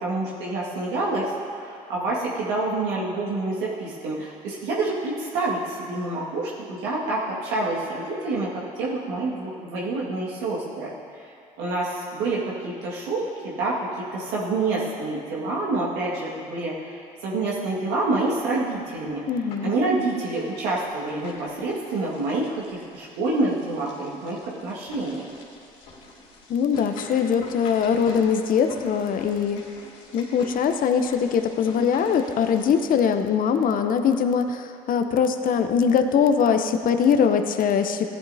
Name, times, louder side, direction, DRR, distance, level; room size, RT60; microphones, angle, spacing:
voice 1, 0.0-8.5 8.8-11.3 11.6-13.8 14.1-19.2 19.6-25.3, right 2 dB, 75° right, -6 dB, 1.9 m, -27 dB
sound 1, 18.9-19.8 20.1-32.8, left 2 dB, 85° left, 2.3 m, -44 dB
voice 2, 19.3-19.7 26.5-29.6 30.1-38.1, left 7 dB, 50° left, 7 dB, 0.7 m, -22 dB
15.5 x 10.5 x 2.8 m, 2.5 s
hypercardioid pair, 60°, 18 cm